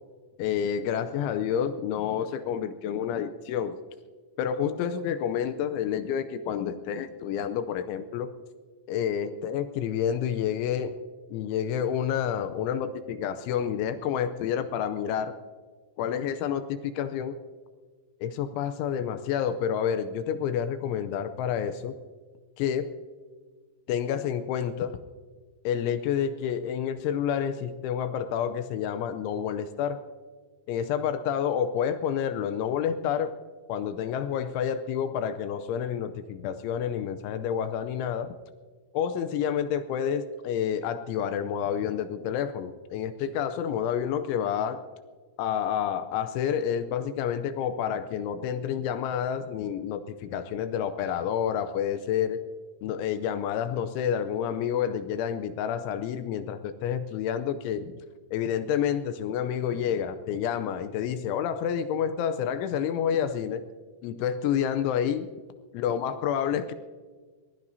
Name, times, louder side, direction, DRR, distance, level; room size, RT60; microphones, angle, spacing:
voice 1, 0.4-3.8 4.4-8.3 8.9-11.0 11.3-15.3 16.0-17.4 18.2-22.0 22.6-22.9 23.9-25.0 25.6-30.0 30.7-33.3 33.7-38.4 38.9-44.8 45.4-52.4 52.8-57.9 58.3-63.6 64.0-65.3 65.7-66.7, left 8 dB, 80° left, 10 dB, 2.9 m, -29 dB
23.0 x 18.5 x 2.7 m, 1.5 s
omnidirectional pair, 5.7 m